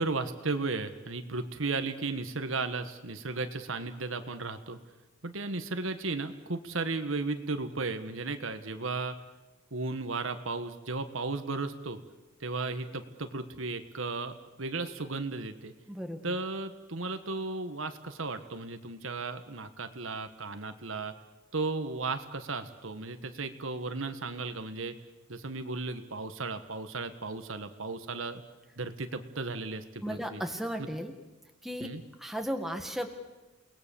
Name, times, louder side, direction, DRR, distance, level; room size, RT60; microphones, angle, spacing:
voice 1, 0.0-4.8 5.2-9.2 9.7-12.0 12.4-15.7 16.2-21.1 21.5-24.9 25.3-28.4 28.8-30.4 30.8-30.9 31.8-32.0, right 3 dB, 75° right, 9 dB, 1.5 m, -35 dB
voice 2, 15.9-16.4 30.0-31.1 31.6-31.9 32.2-33.1, equal, ahead, 4 dB, 1.8 m, -35 dB
29.0 x 19.5 x 7.1 m, 1.1 s
head